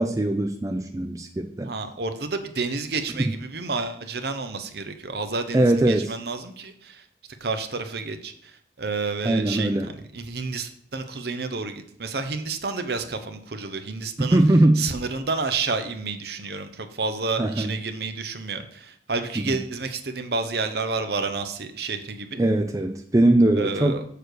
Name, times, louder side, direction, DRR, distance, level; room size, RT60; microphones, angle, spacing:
voice 1, 0.0-1.7 5.5-6.1 9.2-9.9 14.3-14.8 17.4-17.7 19.4-19.5 22.4-24.0, right 1 dB, 15° right, 5 dB, 0.4 m, -21 dB
voice 2, 1.6-7.1 7.4-14.4 14.8-22.4 23.6-24.0, right 4 dB, 55° right, 8 dB, 0.8 m, -30 dB
6.9 x 6.5 x 4.7 m, 0.64 s
head